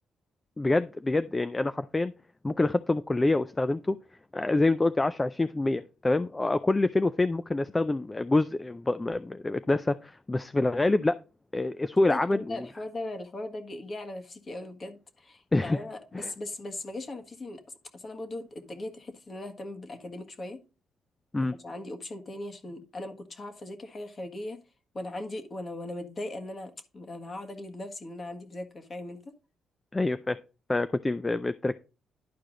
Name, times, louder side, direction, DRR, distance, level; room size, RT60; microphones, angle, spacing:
voice 1, 0.6-2.1 2.4-4.0 4.3-11.2 11.5-12.7 15.5-15.8 16.1-16.3 21.3-21.6 29.9-30.4 30.7-31.7, left 2 dB, 20° left, 12 dB, 0.4 m, -26 dB
voice 2, 12.1-17.6 17.9-20.6 21.4-24.6 24.9-29.2, left 2 dB, 35° left, 6 dB, 1.6 m, -39 dB
11.0 x 4.7 x 3.9 m, 0.33 s
cardioid pair, 90°, 0 cm